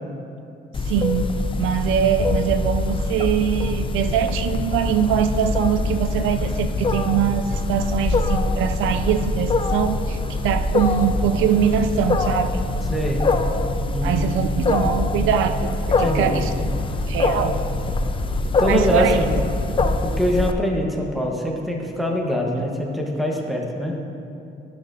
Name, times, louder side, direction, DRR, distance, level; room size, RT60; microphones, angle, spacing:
Wild animals, 0.7-20.5, left 2 dB, 25° left, 0.4 m, -24 dB
voice 1, 0.9-1.3 1.6-12.6 14.0-16.5 17.1-17.6 18.7-19.2 22.5-22.6, right 8 dB, 85° right, 8 dB, 0.4 m, -22 dB
voice 2, 12.9-13.2 13.9-14.3 16.0-16.3 18.6-19.3 20.0-24.0, equal, ahead, 0 dB, 1.1 m, -23 dB
12.5 x 6.2 x 2.7 m, 2.7 s
cardioid pair, 90°, 20 cm